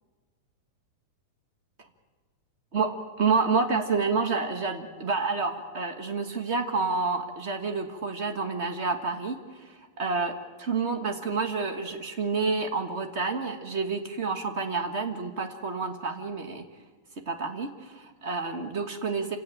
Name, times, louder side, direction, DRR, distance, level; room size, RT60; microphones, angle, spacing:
voice 1, 3.2-9.4 10.0-16.7 17.2-19.4, right 4 dB, 40° right, 6 dB, 0.9 m, -29 dB
28.0 x 17.0 x 9.0 m, 1.4 s
omnidirectional pair, 3.5 m